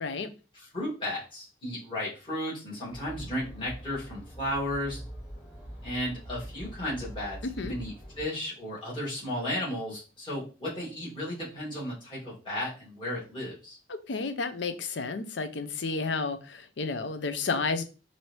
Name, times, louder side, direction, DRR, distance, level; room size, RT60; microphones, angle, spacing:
voice 1, 0.6-5.0 5.8-13.8, left 1 dB, 25° left, -7 dB, 2.2 m, -34 dB
sound 1, 2.9-8.2, equal, 50° left, 1.8 m, -44 dB
voice 2, 7.4-7.7 13.9-17.8, left 4 dB, 75° left, 10 dB, 0.6 m, -31 dB
4.6 x 2.7 x 3.1 m, 0.33 s
head